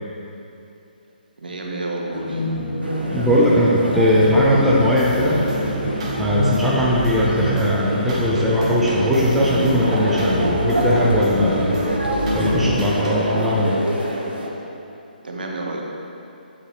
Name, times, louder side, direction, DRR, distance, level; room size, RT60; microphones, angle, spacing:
voice 1, 1.4-2.4 15.2-15.8, right 2 dB, 65° right, 0 dB, 1.1 m, -29 dB
sound 1, 2.1-12.9, left 1 dB, 80° left, 1.0 m, -27 dB
sound 2, 2.8-14.5, equal, 85° right, 1.2 m, -27 dB
voice 2, 3.1-5.4 6.2-11.8 12.3-13.8, equal, 5° right, -6 dB, 0.8 m, -19 dB
sound 3, 5.0-13.3, right 1 dB, 40° right, 1.5 m, -32 dB
8.2 x 7.6 x 3.2 m, 2.7 s
figure-of-eight pair, 135°, 5 cm